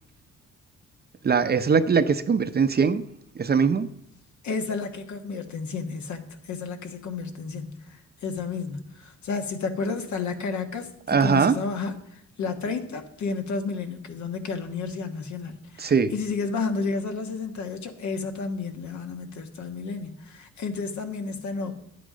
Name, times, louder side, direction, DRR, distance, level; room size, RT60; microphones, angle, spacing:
voice 1, 1.2-3.0 3.4-3.9 11.1-11.5 15.8-16.1, right 5 dB, 35° right, 0.7 m, -21 dB
voice 2, 4.4-21.7, left 4 dB, 70° left, 1.5 m, -32 dB
10.5 x 8.5 x 5.1 m
cardioid pair, 90°, 30 cm